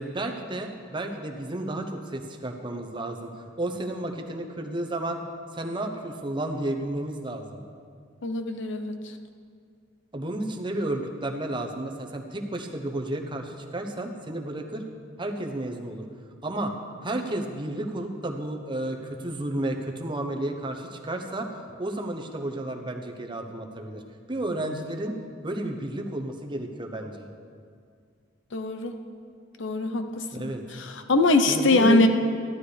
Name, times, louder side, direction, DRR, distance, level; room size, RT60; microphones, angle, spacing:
voice 1, 0.0-5.2 5.5-7.6 10.1-14.8 15.2-16.0 16.4-16.7 17.0-21.5 21.8-24.0 24.3-25.2 25.4-27.3 30.3-30.6 31.5-32.1, right 1 dB, 25° right, 4 dB, 0.9 m, -32 dB
voice 2, 8.2-9.2 28.5-29.0 29.6-32.1, left 2 dB, 65° left, 7 dB, 0.8 m, -23 dB
14.5 x 12.0 x 3.4 m, 2.1 s
head